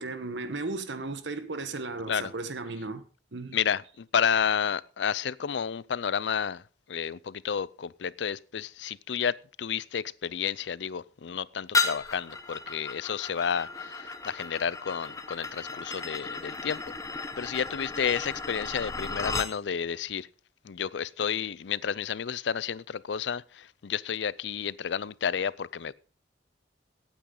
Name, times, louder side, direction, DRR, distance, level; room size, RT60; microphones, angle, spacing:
voice 1, 0.0-3.0 3.3-3.6, right 3 dB, 80° right, 1.1 m, -35 dB
voice 2, 3.5-6.6 6.9-20.3 20.6-25.9, left 7 dB, 75° left, 0.5 m, -31 dB
sound 1, 11.7-19.5, left 3 dB, 20° left, 0.9 m, -34 dB
16.5 x 9.0 x 3.9 m
head